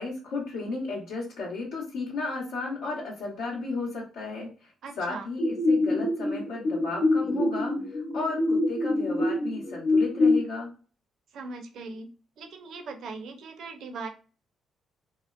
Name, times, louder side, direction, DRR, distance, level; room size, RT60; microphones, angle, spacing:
voice 1, 0.0-4.5 5.0-7.7 8.1-10.7, left 3 dB, 90° left, -4 dB, 0.8 m, -34 dB
voice 2, 4.8-5.3 11.3-14.1, right 4 dB, 70° right, 5 dB, 0.5 m, -40 dB
sound 1, 5.4-10.4, left 2 dB, 60° left, 0.9 m, -25 dB
2.8 x 2.0 x 2.4 m, 0.37 s
cardioid pair, 90°, 0 cm